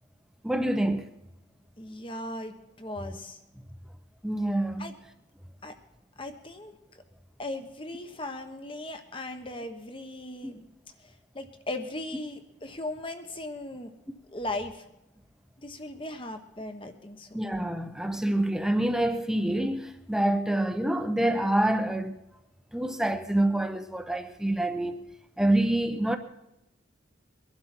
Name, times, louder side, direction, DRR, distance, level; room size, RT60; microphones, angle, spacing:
voice 1, 0.4-1.1 4.2-4.9 10.4-10.5 17.3-22.2 22.7-25.1 25.4-26.2, right 1 dB, 5° right, 0.8 m, -26 dB
voice 2, 1.8-3.4 4.8-4.9 5.6-5.7 6.2-7.0 7.4-10.7 11.0-13.9 14.3-14.8 15.6-17.3, left 2 dB, 30° left, 1.2 m, -38 dB
22.5 x 11.5 x 4.5 m
head